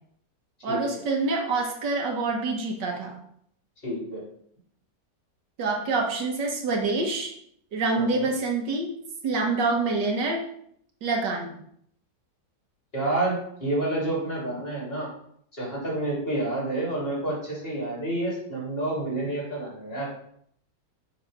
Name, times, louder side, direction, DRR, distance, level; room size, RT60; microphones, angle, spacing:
voice 1, 0.6-3.2 5.6-7.3 7.7-8.9 9.2-10.4 11.0-11.6, right 3 dB, 80° right, 1 dB, 1.8 m, -26 dB
voice 2, 3.8-4.2 8.0-8.3 12.9-15.1 15.5-20.1, right 2 dB, 35° left, -4 dB, 3.0 m, -29 dB
7.1 x 3.6 x 5.5 m, 0.68 s
omnidirectional pair, 1.9 m